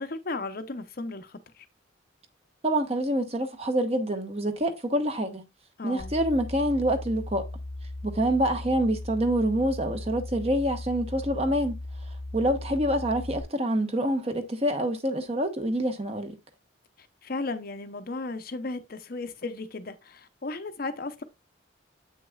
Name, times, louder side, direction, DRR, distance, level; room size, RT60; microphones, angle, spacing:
voice 1, 0.0-1.7 5.8-6.1 17.0-21.2, left 3 dB, 45° left, 0.7 m, -35 dB
voice 2, 2.6-5.4 5.8-7.5 8.0-11.8 12.3-16.4, right 1 dB, 30° right, 1.0 m, -26 dB
sound 1, 6.0-13.4, left 1 dB, 65° right, 2.4 m, -37 dB
8.0 x 6.2 x 2.3 m
head